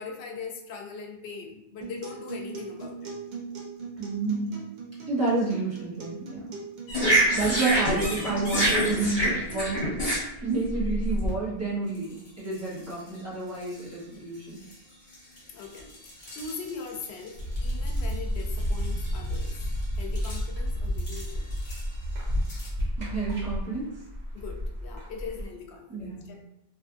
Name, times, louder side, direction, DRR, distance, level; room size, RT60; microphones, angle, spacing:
voice 1, 0.0-3.2 7.2-7.4 15.5-15.9 16.3-19.5 20.0-21.5 24.3-26.4, left 5 dB, 85° left, 2 dB, 0.8 m, -40 dB
Acoustic guitar, 1.8-9.8, right 5 dB, 55° right, 0.6 m, -40 dB
voice 2, 4.0-4.6 5.1-6.5 7.3-10.0 10.4-14.6 23.0-23.9 25.9-26.3, right 3 dB, 15° right, -9 dB, 1.0 m, -29 dB
sound 1, 6.9-11.3 12.0-12.2 12.5-12.9 13.6-13.8 14.7-14.8 15.1-18.1 18.4-19.8 20.2-20.4 21.0-21.8 22.4-22.7, right 1 dB, 50° left, 1.2 m, -28 dB
sound 2, 17.4-25.5, equal, 80° right, 1.1 m, -31 dB
2.6 x 2.5 x 2.4 m, 0.81 s
omnidirectional pair, 1.1 m